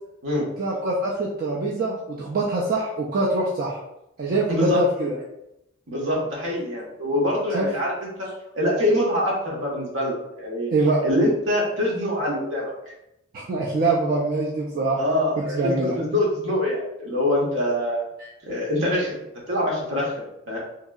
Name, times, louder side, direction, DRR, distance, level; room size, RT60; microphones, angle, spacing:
voice 1, 0.6-3.8 4.2-5.2 7.5-7.7 10.7-11.0 13.3-15.0 15.4-16.0, right 2 dB, 45° right, -4 dB, 0.4 m, -24 dB
voice 2, 4.5-4.8 5.9-8.1 8.5-10.7 11.0-12.7 15.0-18.1 18.5-19.2 19.5-20.1 20.5-20.6, left 1 dB, 70° right, -3 dB, 0.9 m, -24 dB
2.9 x 2.6 x 2.3 m, 0.85 s
head